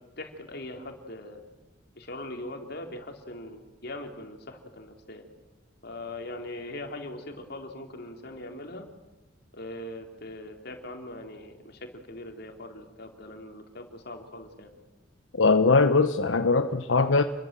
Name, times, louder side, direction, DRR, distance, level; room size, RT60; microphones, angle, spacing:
voice 1, 0.2-1.4 2.0-5.2 5.8-8.9 9.5-14.7, left 1 dB, 60° left, 3.8 m, -41 dB
voice 2, 15.4-17.2, left 3 dB, 90° left, 1.0 m, -21 dB
29.0 x 22.5 x 7.7 m
head